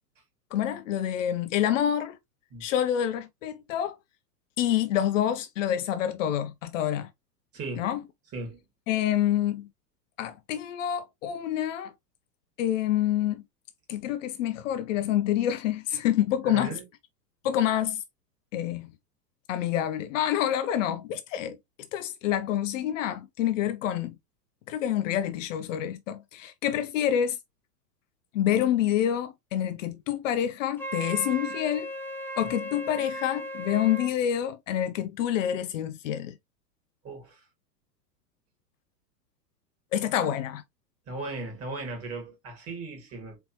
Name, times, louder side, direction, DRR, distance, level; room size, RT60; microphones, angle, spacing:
voice 1, 0.5-2.2 2.6-4.0 4.6-7.1 7.8-8.0 8.9-9.7 10.2-11.9 12.6-13.4 13.9-16.8 17.4-18.0 18.5-18.9 19.5-21.6 21.9-24.1 24.7-27.4 28.3-31.9 32.4-36.4 39.9-40.6, left 11 dB, 50° left, 0.6 m, -27 dB
voice 2, 7.5-7.9 8.3-8.6 16.5-16.8 32.4-32.5 37.0-37.4 41.1-43.4, right 3 dB, 30° right, 2.5 m, -37 dB
Wind instrument woodwind instrument, 30.8-34.1, equal, 5° left, 0.6 m, -36 dB
4.3 x 3.2 x 2.8 m
hypercardioid pair, 105°, 50 cm